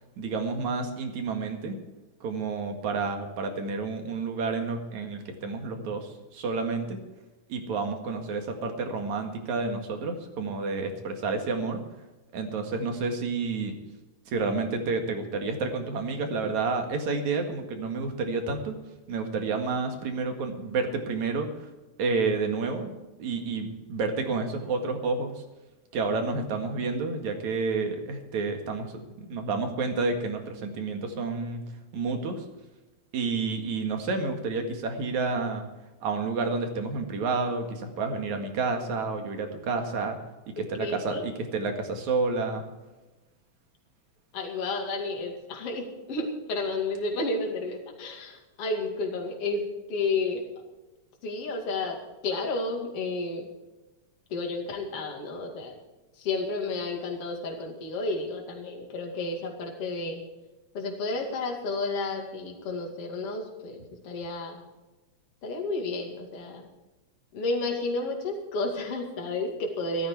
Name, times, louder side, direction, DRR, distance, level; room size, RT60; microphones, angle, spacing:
voice 1, 0.2-1.8 2.2-7.0 7.5-11.8 12.3-13.8 14.3-18.8 19.1-21.7 22.0-22.9 23.2-25.3 25.9-31.6 31.9-32.4 33.1-35.7 36.0-40.2 40.6-42.6, right 4 dB, 70° right, 5 dB, 3.2 m, -30 dB
voice 2, 40.8-41.2 44.3-49.6 49.9-50.4 51.2-52.0 52.2-53.5 54.3-55.8 56.2-60.2 60.7-64.6 65.4-66.7 67.3-70.1, left 3 dB, 50° left, 1 dB, 3.2 m, -31 dB
15.5 x 13.5 x 4.7 m, 1.1 s
omnidirectional pair, 3.5 m